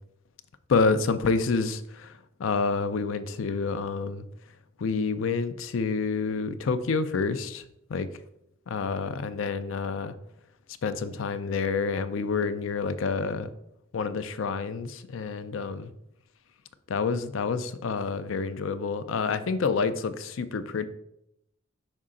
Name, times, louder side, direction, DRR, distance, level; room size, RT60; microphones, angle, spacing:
voice 1, 0.7-4.3 4.8-7.6 7.9-8.1 8.7-10.2 10.8-13.5 13.9-15.9 16.9-20.8, left 4 dB, 80° left, 11 dB, 0.4 m, -28 dB
5.4 x 4.7 x 3.7 m, 0.79 s
head